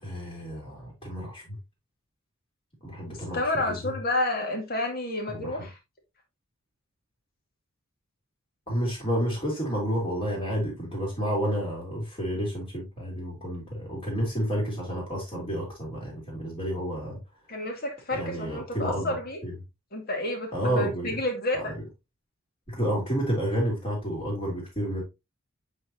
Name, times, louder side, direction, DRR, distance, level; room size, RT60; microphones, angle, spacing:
voice 1, 0.0-1.6 2.8-3.8 5.3-5.6 8.7-17.2 18.1-19.2 19.4-19.5 20.5-21.1 21.5-21.7 22.7-25.0, equal, 30° left, 2.8 m, -30 dB
voice 2, 3.3-5.7 17.5-19.4 19.9-21.7, left 1 dB, 50° left, 2.1 m, -30 dB
8.3 x 4.5 x 2.8 m
head